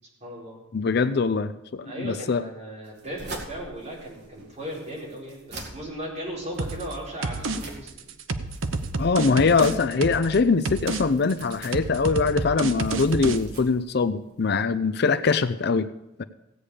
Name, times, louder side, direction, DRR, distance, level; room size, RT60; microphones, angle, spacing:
voice 1, 0.2-0.6 1.8-8.1, equal, 35° right, -5 dB, 4.7 m, -37 dB
voice 2, 0.7-2.4 9.0-15.9 16.2-16.3, left 4 dB, 55° left, 13 dB, 0.5 m, -23 dB
sound 1, 2.8-14.6, right 2 dB, 55° right, 2.3 m, -45 dB
sound 2, 6.6-6.9 7.2-7.6 7.9-10.4 10.7-11.0 11.3-13.4, right 3 dB, 80° right, 0.8 m, -29 dB
16.5 x 8.6 x 5.0 m, 0.87 s
head